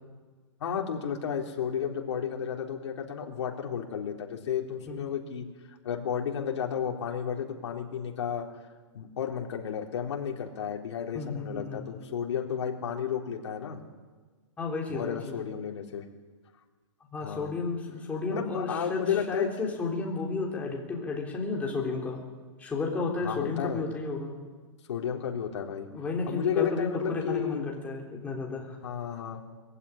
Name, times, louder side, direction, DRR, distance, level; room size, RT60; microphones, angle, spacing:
voice 1, 0.6-8.5 8.9-13.8 14.9-16.0 17.2-17.5 18.3-19.8 23.2-23.9 24.9-25.9 26.3-27.7 28.8-29.4, left 8 dB, 65° left, 2 dB, 3.7 m, -32 dB
voice 2, 11.1-12.1 14.6-15.4 17.1-22.2 22.6-24.3 25.9-28.8, left 4 dB, 10° left, -1 dB, 3.4 m, -32 dB
21.5 x 15.5 x 10.0 m, 1.4 s
hypercardioid pair, 170°, 16 cm